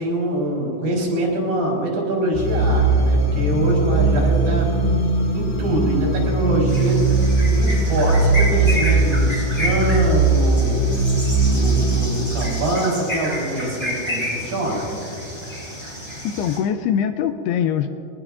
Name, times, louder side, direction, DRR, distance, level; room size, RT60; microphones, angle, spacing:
voice 1, 0.0-4.7 5.3-7.1 7.4-10.8 11.4-14.9, right 1 dB, 65° right, -3 dB, 6.6 m, -24 dB
sound 1, 2.3-12.1, right 3 dB, 60° left, 3.5 m, -19 dB
sound 2, 6.7-16.6, left 1 dB, 15° left, 4.3 m, -30 dB
voice 2, 16.2-17.9, left 9 dB, 80° left, 8 dB, 2.4 m, -22 dB
24.0 x 20.0 x 2.6 m, 2.8 s
omnidirectional pair, 4.9 m